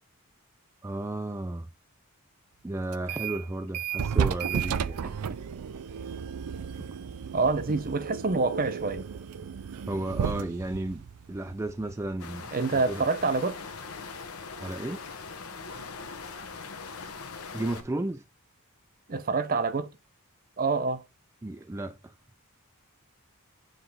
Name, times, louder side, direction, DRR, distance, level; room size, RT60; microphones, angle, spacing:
voice 1, 0.8-1.7 2.6-5.0 9.9-12.5 12.9-13.1 14.6-15.0 17.5-18.2 21.4-22.1, right 2 dB, 10° right, 0.3 m, -33 dB
sound 1, 2.9-3.4 3.7-12.2, right 7 dB, 80° right, 0.4 m, -33 dB
voice 2, 7.3-9.1 12.5-13.6 19.1-19.9 20.6-21.0, right 4 dB, 40° right, 0.7 m, -27 dB
sound 2, 12.2-17.8, left 4 dB, 75° left, 1.0 m, -41 dB
7.8 x 3.2 x 4.1 m
head